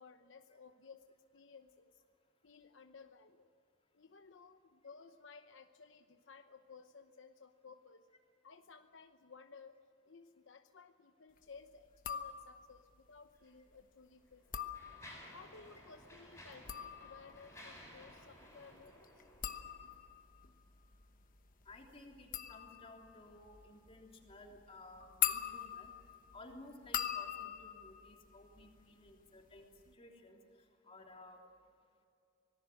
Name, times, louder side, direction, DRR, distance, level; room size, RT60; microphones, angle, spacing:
voice 1, 0.0-2.0 2.4-3.5 3.9-8.1 8.4-9.8 10.0-14.7 15.3-19.2, left 5 dB, 75° left, 7 dB, 0.9 m, -57 dB
sound 1, 11.9-12.8 14.3-15.4 16.4-29.1 29.4-29.9, left 10 dB, 45° left, 1.0 m, -43 dB
Mechanisms, 13.4-13.5 14.2-20.0, left 1 dB, 15° left, 7.7 m, -56 dB
voice 2, 21.6-25.9 26.3-29.7 29.9-30.4 30.8-31.4, left 2 dB, 30° left, 1 dB, 3.3 m, -56 dB
25.5 x 19.0 x 7.7 m, 2.4 s
head